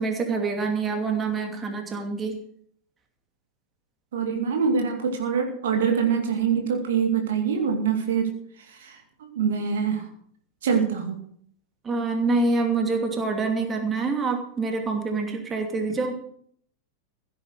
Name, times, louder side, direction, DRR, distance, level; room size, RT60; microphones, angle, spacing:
voice 1, 0.0-2.4 11.8-16.1, right 3 dB, 20° right, 4 dB, 2.7 m, -26 dB
voice 2, 4.1-8.3 8.7-10.1 10.6-11.2, right 6 dB, 60° right, 4 dB, 2.4 m, -24 dB
16.0 x 8.6 x 6.5 m, 0.63 s
figure-of-eight pair, 90°, 0 cm